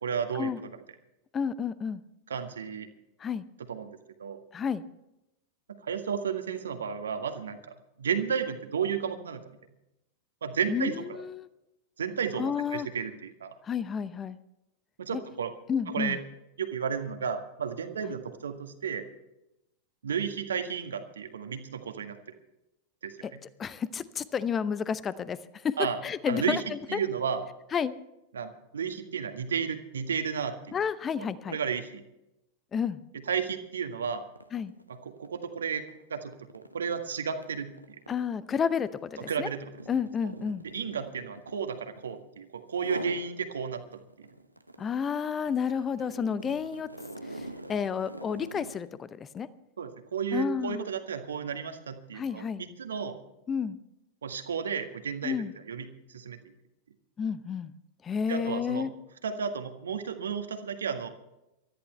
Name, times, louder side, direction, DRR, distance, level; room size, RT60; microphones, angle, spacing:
voice 1, 0.0-0.5 2.3-2.9 3.7-4.4 5.7-9.4 10.4-11.2 12.0-13.5 15.0-15.5 15.9-16.2 16.6-19.1 20.0-22.2 23.0-23.4 25.8-26.0 26.3-26.6 26.9-27.5 28.3-30.8 31.2-32.0 33.3-34.3 34.9-35.9 36.1-37.7 39.3-39.7 40.7-43.8 44.2-44.3 49.8-53.2 54.2-56.4 58.3-58.9 59.2-61.1, right 6 dB, 70° right, 7 dB, 1.7 m, -33 dB
voice 2, 1.3-2.0 3.2-3.4 4.5-4.8 10.7-11.5 12.4-12.9 13.6-14.4 15.1-15.2 15.7-16.2 18.0-18.1 23.2-23.3 23.6-25.4 25.6-26.6 26.9-27.0 27.7-27.9 30.7-31.6 32.7-33.0 34.5-34.7 38.1-39.5 39.9-40.6 44.8-46.9 47.3-49.5 50.3-50.8 52.1-52.6 53.5-53.8 55.2-55.5 57.2-57.7 58.0-58.9, left 7 dB, 20° left, 16 dB, 0.8 m, -31 dB
sound 1, 33.3-33.5 33.8-42.3 42.7-43.3 43.7-48.9, right 1 dB, 85° right, 0.9 m, -44 dB
23.5 x 13.5 x 3.3 m, 0.89 s
figure-of-eight pair, 90°, 0 cm